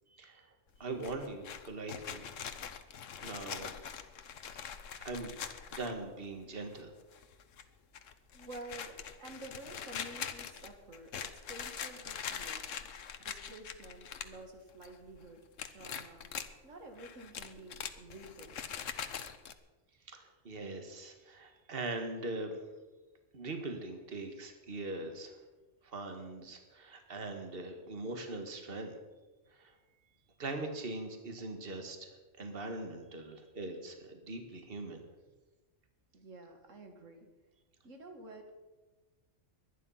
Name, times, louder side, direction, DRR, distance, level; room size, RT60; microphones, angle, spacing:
voice 1, 0.1-0.5 0.8-2.2 3.2-3.7 5.0-5.3 5.7-6.9 20.1-22.6 23.3-25.4 25.8-29.0 29.5-29.7 30.4-35.0, right 2 dB, 50° right, 5 dB, 1.9 m, -41 dB
sound 1, 0.7-6.3 6.7-6.8 7.1-7.6 7.9-14.4 14.7-15.2 15.6-16.5 17.0-19.5, left 7 dB, 90° left, 1.3 m, -43 dB
voice 2, 8.3-12.9 13.2-16.3 16.6-18.6 36.1-37.3 37.8-38.5, right 2 dB, 90° right, 4 dB, 2.3 m, -50 dB
23.0 x 10.0 x 5.7 m, 1.2 s
omnidirectional pair, 1.3 m